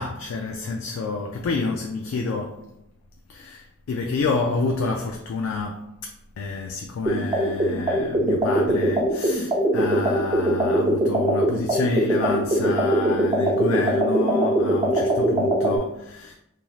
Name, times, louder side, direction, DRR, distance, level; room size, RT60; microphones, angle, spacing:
voice 1, 0.0-2.7 3.3-6.1 6.4-16.4, left 4 dB, 70° left, 0.3 m, -28 dB
sound 1, 7.1-15.8, right 1 dB, 20° right, 0.4 m, -21 dB
3.1 x 2.6 x 2.3 m
head